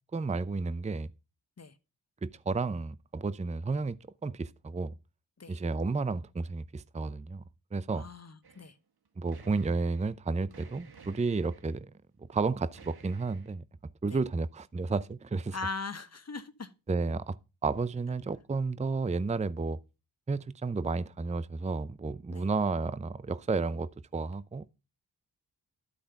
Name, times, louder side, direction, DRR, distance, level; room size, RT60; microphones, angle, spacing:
voice 1, 0.1-1.1 2.2-4.0 4.2-4.9 5.5-7.4 7.7-8.1 9.2-11.9 12.3-13.6 14.0-15.6 16.9-17.4 17.6-19.8 20.3-24.7, right 4 dB, 15° right, 0.6 m, -32 dB
voice 2, 7.9-8.7 15.5-16.7 22.3-22.5, left 3 dB, 35° left, 1.3 m, -39 dB
sound 1, 8.4-8.7 9.0-10.1 10.5-11.8 12.7-13.5, right 5 dB, 60° right, 1.7 m, -54 dB
12.0 x 5.1 x 5.8 m
supercardioid pair, 40°, 43 cm